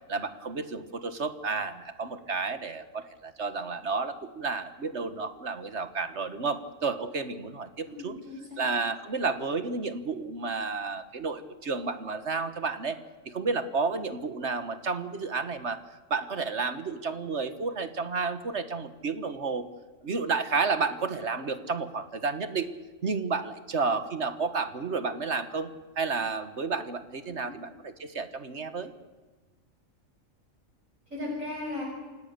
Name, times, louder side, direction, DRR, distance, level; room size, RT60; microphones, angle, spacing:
voice 1, 0.1-8.2 8.6-13.0 13.2-19.6 20.0-22.7 23.0-25.7 26.0-28.9, right 4 dB, 60° right, 11 dB, 1.6 m, -31 dB
voice 2, 7.8-8.6 27.3-27.5 31.1-31.8, left 2 dB, 80° right, -2 dB, 7.6 m, -37 dB
28.5 x 17.5 x 6.7 m, 1.3 s
omnidirectional pair, 1.4 m